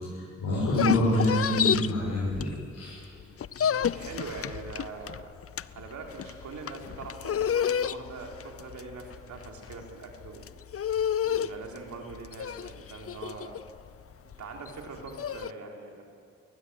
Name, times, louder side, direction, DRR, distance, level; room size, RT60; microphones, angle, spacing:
voice 1, 0.4-3.0 3.2-3.7, left 1 dB, 85° left, -7 dB, 7.0 m, -27 dB
sound 1, 0.5-2.9 3.2-15.5, left 8 dB, 50° left, 0.6 m, -30 dB
voice 2, 3.8-5.3 5.7-10.5 11.2-13.6 14.2-16.0, right 4 dB, 80° right, 1 dB, 3.7 m, -42 dB
20.5 x 20.0 x 9.8 m, 2.2 s
supercardioid pair, 45°, 29 cm